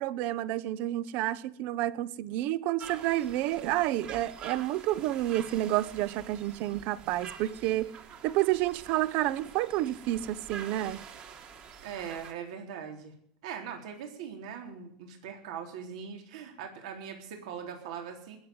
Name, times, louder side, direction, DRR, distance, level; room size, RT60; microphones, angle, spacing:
voice 1, 0.0-7.9 8.2-11.0, right 14 dB, 50° right, 0.8 m, -30 dB
sound 1, 2.8-12.3, right 6 dB, 35° right, 2.3 m, -47 dB
voice 2, 11.8-13.1 13.4-18.4, right 7 dB, 75° right, 3.9 m, -41 dB
20.5 x 8.0 x 7.8 m
supercardioid pair, 155°, 4 cm